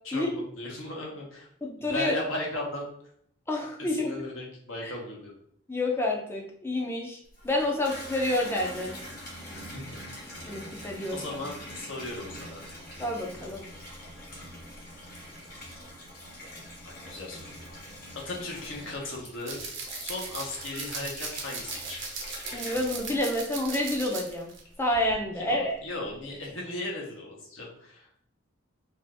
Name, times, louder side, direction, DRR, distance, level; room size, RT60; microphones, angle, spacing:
voice 1, 0.0-1.5 1.8-2.9 3.8-5.3 10.1-10.3 11.1-12.7 16.8-17.5 18.2-19.6 19.9-22.0 25.3-28.1, left 2 dB, 75° left, -2 dB, 0.9 m, -36 dB
voice 2, 1.6-2.1 3.5-4.1 4.8-4.9 5.7-7.2 7.4-9.0 10.5-11.2 13.0-13.6 22.5-24.5 24.8-25.7, left 1 dB, 10° left, 0 dB, 0.4 m, -28 dB
Water tap faucet / Bathtub (filling or washing), 7.2-24.2 24.6-25.2, left 1 dB, 45° left, 0.9 m, -44 dB
sound 1, 19.5-24.6 24.9-25.1, right 4 dB, 65° right, 0.7 m, -38 dB
2.7 x 2.4 x 3.3 m, 0.65 s
head